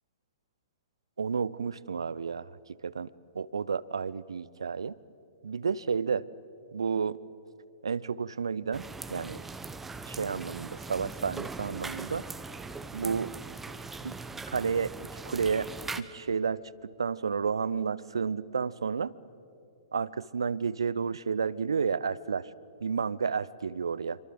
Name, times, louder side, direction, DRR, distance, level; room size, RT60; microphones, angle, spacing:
voice 1, 1.2-2.5 2.8-3.1 3.3-4.9 5.4-6.3 6.7-7.2 7.8-9.4 10.0-12.2 12.9-13.3 14.0-14.1 14.5-14.9 15.3-15.7 16.0-16.6 17.0-19.1 19.9-22.5 22.8-24.2, right 6 dB, 65° right, 20 dB, 0.7 m, -31 dB
sound 1, 8.7-16.0, right 3 dB, 10° right, 1.0 m, -40 dB
27.5 x 24.0 x 7.8 m, 2.7 s
figure-of-eight pair, 115°, 3 cm